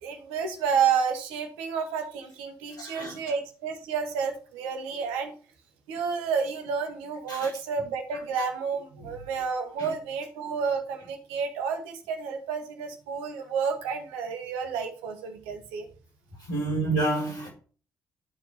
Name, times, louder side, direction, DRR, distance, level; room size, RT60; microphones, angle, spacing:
voice 1, 0.0-5.3 5.9-15.9, right 6 dB, 70° right, 1.3 m, -30 dB
voice 2, 2.8-3.2 7.3-7.5 9.8-9.9 16.5-17.5, right 2 dB, 90° left, 5.2 m, -28 dB
11.0 x 4.7 x 4.9 m
figure-of-eight pair, 40°, 10 cm